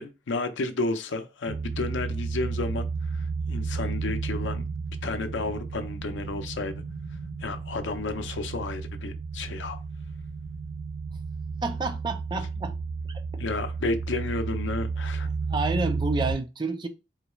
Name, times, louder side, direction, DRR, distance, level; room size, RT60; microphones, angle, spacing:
voice 1, 0.0-4.6 5.0-6.8 7.4-9.8 13.4-15.3, left 3 dB, 85° left, 0.5 m, -32 dB
sound 1, 1.5-16.3, right 4 dB, 70° right, 0.9 m, -32 dB
voice 2, 11.6-12.7 13.0-13.1 15.5-16.9, right 3 dB, 25° right, 0.4 m, -29 dB
3.9 x 2.3 x 2.9 m
head